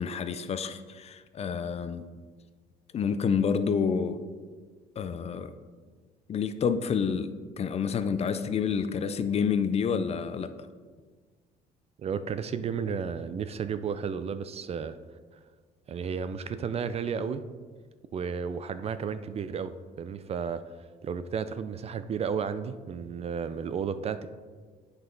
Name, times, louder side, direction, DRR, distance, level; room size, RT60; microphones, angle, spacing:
voice 1, 0.0-2.0 2.9-4.2 5.0-5.5 6.3-10.5, left 6 dB, 40° left, 10 dB, 0.5 m, -28 dB
voice 2, 12.0-15.0 15.9-17.4 18.1-20.6 21.0-24.3, right 6 dB, 40° right, 12 dB, 0.4 m, -33 dB
8.1 x 5.5 x 3.9 m, 1.5 s
cardioid pair, 110°, 17 cm